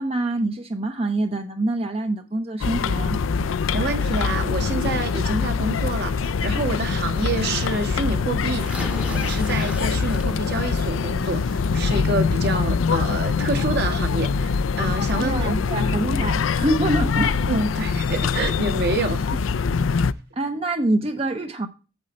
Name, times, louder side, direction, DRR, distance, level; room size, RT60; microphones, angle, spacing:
voice 1, 0.0-3.2 15.2-17.5 20.3-21.7, right 2 dB, 30° right, 0.7 m, -25 dB
sound 1, 2.6-20.1, left 5 dB, 85° left, 0.5 m, -23 dB
voice 2, 3.7-15.9 17.5-19.2, right 2 dB, 55° right, 1.4 m, -28 dB
sound 2, 8.6-10.7 11.1-11.5 12.9-13.0 13.4-13.5, right 1 dB, 5° right, 0.9 m, -37 dB
8.8 x 7.7 x 4.2 m
head